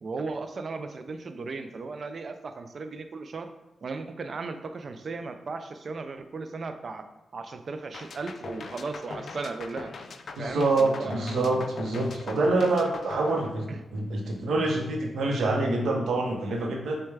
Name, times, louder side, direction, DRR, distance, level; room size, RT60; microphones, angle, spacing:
voice 1, 0.0-3.5 3.8-7.1 7.3-9.9 10.4-11.3 13.7-13.8, right 3 dB, 55° right, 8 dB, 0.3 m, -36 dB
sound 1, 7.9-14.1, left 4 dB, 65° left, 0.3 m, -41 dB
voice 2, 10.4-17.0, right 2 dB, 85° right, 1 dB, 0.7 m, -26 dB
6.4 x 2.2 x 3.3 m, 0.96 s
cardioid pair, 85°, 0 cm